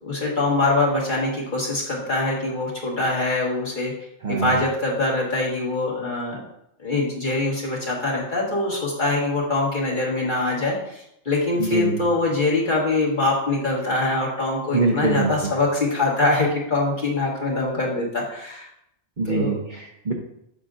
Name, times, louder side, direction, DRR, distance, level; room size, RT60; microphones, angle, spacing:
voice 1, 0.0-3.9 4.3-6.4 6.8-18.7 19.3-19.5, left 2 dB, 45° left, -4 dB, 1.7 m, -23 dB
voice 2, 11.6-12.0 14.7-15.3 19.2-20.1, right 4 dB, 45° right, -1 dB, 0.9 m, -24 dB
6.8 x 6.5 x 2.6 m, 0.78 s
omnidirectional pair, 1.2 m